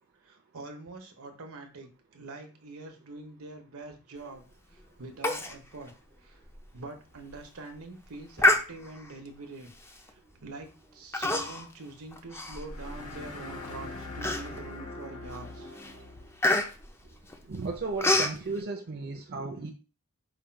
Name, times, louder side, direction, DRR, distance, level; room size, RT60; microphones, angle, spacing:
voice 1, 0.3-4.4 5.0-5.9 6.2-6.4 6.7-9.7 10.4-15.7, right 3 dB, 80° right, 5 dB, 0.9 m, -44 dB
Human voice, 5.2-5.6 5.9-6.0 6.5-6.6 7.2-7.4 8.4-9.1 9.9-10.1 11.1-11.7 12.1-13.2 13.6-13.7 14.2-14.8 15.3-15.5 15.8-18.4, left 1 dB, 10° left, 0.4 m, -27 dB
sound 1, 12.6-16.3, left 2 dB, 85° left, 1.0 m, -42 dB
voice 2, 17.5-19.7, right 3 dB, 45° right, 3 dB, 0.5 m, -34 dB
4.9 x 2.3 x 4.4 m, 0.33 s
head